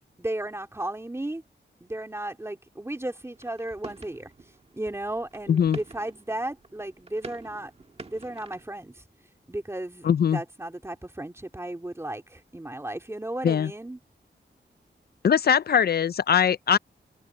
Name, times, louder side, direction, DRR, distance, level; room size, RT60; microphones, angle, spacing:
voice 1, 0.2-1.4 1.8-4.3 4.7-7.7 8.0-9.0 9.5-14.0, right 1 dB, 15° right, 3.0 m, -34 dB
sound 1, 3.3-8.7, right 3 dB, 30° right, 1.6 m, -46 dB
voice 2, 10.0-10.4 13.4-13.7 15.2-16.8, left 8 dB, 55° left, 0.4 m, -21 dB
open air
wide cardioid pair, 140°, 19 cm